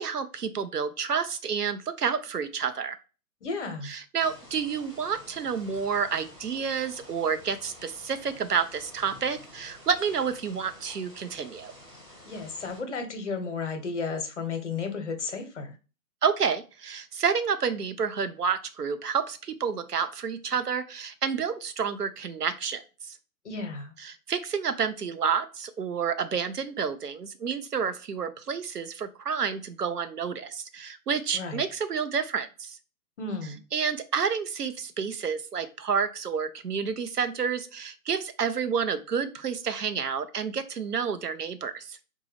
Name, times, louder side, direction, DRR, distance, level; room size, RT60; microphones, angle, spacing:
voice 1, 0.0-3.0 3.8-11.7 16.2-23.2 24.0-32.8 33.7-42.0, right 6 dB, 80° right, 9 dB, 0.7 m, -29 dB
voice 2, 3.4-3.9 12.3-15.7 23.4-23.9 31.3-31.6 33.2-33.6, left 4 dB, 50° left, 6 dB, 0.8 m, -33 dB
sound 1, 4.2-12.8, left 1 dB, 5° right, 0.8 m, -50 dB
3.9 x 2.2 x 3.2 m, 0.33 s
figure-of-eight pair, 130°, 46 cm